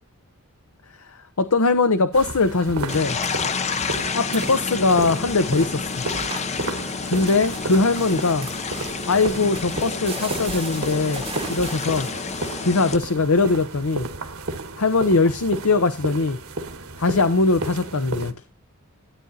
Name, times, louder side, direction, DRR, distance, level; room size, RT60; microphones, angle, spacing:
voice 1, 1.0-3.2 4.1-6.0 7.1-8.5 9.1-11.2 11.5-12.1 12.6-14.1 14.8-16.4 17.0-18.3, left 3 dB, 75° left, 0.8 m, -21 dB
sound 1, 2.1-18.3, right 3 dB, 65° right, 1.7 m, -33 dB
sound 2, 2.9-13.0, left 5 dB, 30° left, 0.6 m, -30 dB
sound 3, 5.3-12.5, right 5 dB, 25° right, 1.0 m, -38 dB
13.5 x 8.8 x 2.8 m
head